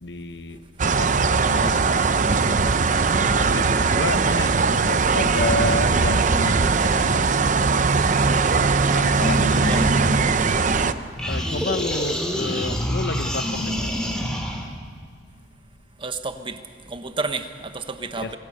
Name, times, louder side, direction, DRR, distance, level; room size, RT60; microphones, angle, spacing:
voice 1, 0.0-0.6 0.9-2.0 3.1-8.3 8.9-10.2 11.3-13.9 18.2-18.4, left 2 dB, 75° left, 10 dB, 1.1 m, -31 dB
sound 1, 0.8-10.9, right 4 dB, 45° right, 0.7 m, -20 dB
voice 2, 3.5-3.9 9.7-10.0 16.0-16.6 16.8-18.4, right 3 dB, 30° right, 8 dB, 1.2 m, -31 dB
sound 2, 9.2-10.8 11.2-14.7, equal, 5° left, 2.6 m, -27 dB
25.0 x 16.0 x 6.8 m, 2.1 s
head